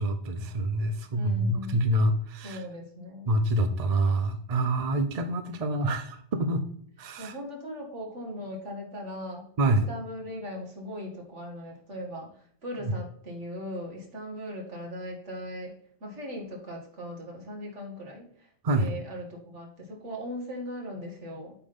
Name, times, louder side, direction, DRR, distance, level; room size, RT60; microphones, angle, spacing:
voice 1, 0.0-2.6 3.3-6.6 7.0-7.3 9.6-9.9 18.6-18.9, right 1 dB, 40° right, 8 dB, 0.7 m, -26 dB
voice 2, 1.1-1.8 2.4-3.4 7.2-15.7 16.0-18.5 18.7-21.5, left 1 dB, 75° right, 0 dB, 2.3 m, -39 dB
8.4 x 3.8 x 5.2 m, 0.63 s
omnidirectional pair, 1.2 m